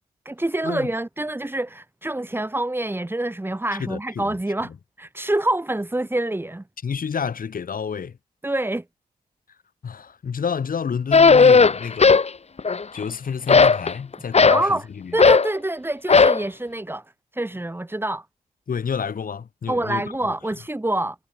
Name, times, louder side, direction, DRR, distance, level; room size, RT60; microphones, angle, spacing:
voice 1, 0.2-4.7 5.0-6.6 8.4-8.8 14.5-14.9 15.1-17.0 17.3-18.2 19.7-21.2, right 1 dB, 15° right, 5.0 m, -26 dB
voice 2, 3.7-4.3 4.7-4.8 6.8-8.2 9.8-12.2 12.9-15.2 18.7-20.3, left 6 dB, 65° left, 6.5 m, -29 dB
sound 1, 11.1-12.3 12.6-13.1 13.5-14.7 15.2-15.5 16.1-16.4, left 4 dB, 45° left, 3.0 m, -14 dB
cardioid pair, 85°, 16 cm